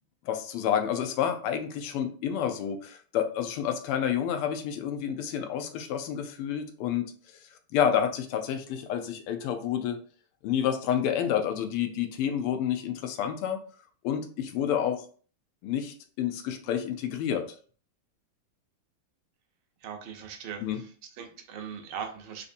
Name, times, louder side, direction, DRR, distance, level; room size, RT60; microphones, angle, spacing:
voice 1, 0.2-7.1 7.7-10.0 10.4-13.6 14.0-15.1 15.6-17.4 20.6-20.8, left 9 dB, 85° left, 6 dB, 1.5 m, -29 dB
voice 2, 19.8-22.4, right 7 dB, 75° right, 4 dB, 1.4 m, -40 dB
4.2 x 2.7 x 2.5 m, 0.42 s
omnidirectional pair, 2.4 m